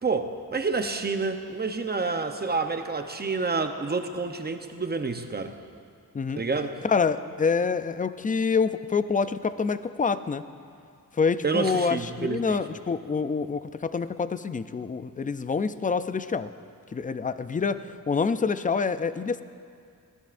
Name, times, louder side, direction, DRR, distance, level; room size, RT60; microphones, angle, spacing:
voice 1, 0.0-5.6 6.3-6.8 11.4-12.6, right 4 dB, 25° right, 6 dB, 0.8 m, -28 dB
voice 2, 6.8-10.5 11.1-16.5 16.9-19.4, left 5 dB, 25° left, 13 dB, 0.4 m, -27 dB
20.0 x 15.5 x 2.6 m, 2.3 s
wide cardioid pair, 105°, 36 cm